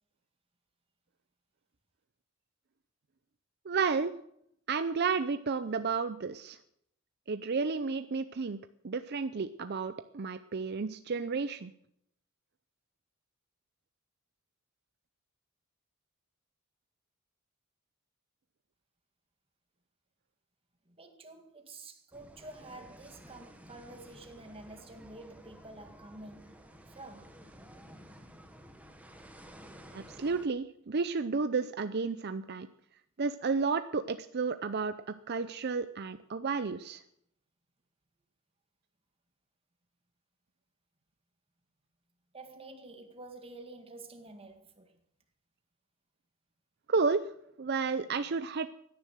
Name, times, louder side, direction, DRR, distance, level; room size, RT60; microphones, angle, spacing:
voice 1, 3.7-4.1 4.7-6.6 7.3-8.6 8.8-11.7 29.9-32.7 33.2-34.9 35.3-37.0 46.9-47.2 47.6-48.7, right 4 dB, 50° right, 0.6 m, -32 dB
voice 2, 20.9-27.4 42.3-45.0, right 2 dB, 25° right, 1.9 m, -49 dB
sound 1, 22.1-30.5, equal, 5° right, 1.4 m, -53 dB
16.5 x 10.5 x 6.4 m
head